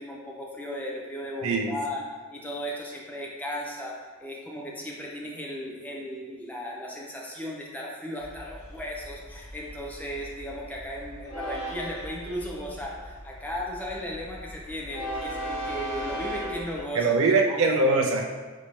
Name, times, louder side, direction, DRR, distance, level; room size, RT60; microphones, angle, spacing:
voice 1, 0.0-2.0 2.3-17.2 17.5-17.6, equal, 10° left, -3 dB, 0.7 m, -36 dB
voice 2, 1.4-1.8 17.0-18.2, right 3 dB, 70° right, 1 dB, 0.4 m, -22 dB
Train, 8.2-16.8, right 1 dB, 80° left, 1.2 m, -38 dB
4.3 x 4.0 x 3.1 m, 1.3 s
head